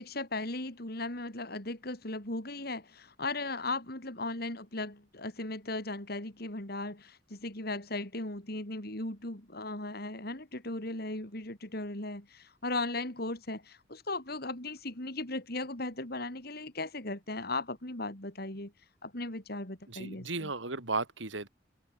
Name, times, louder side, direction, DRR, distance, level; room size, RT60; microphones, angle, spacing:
voice 1, 0.0-18.7 19.0-20.5, left 2 dB, 55° left, 4.7 m, -37 dB
voice 2, 19.9-21.5, right 3 dB, 85° right, 4.0 m, -35 dB
open air
head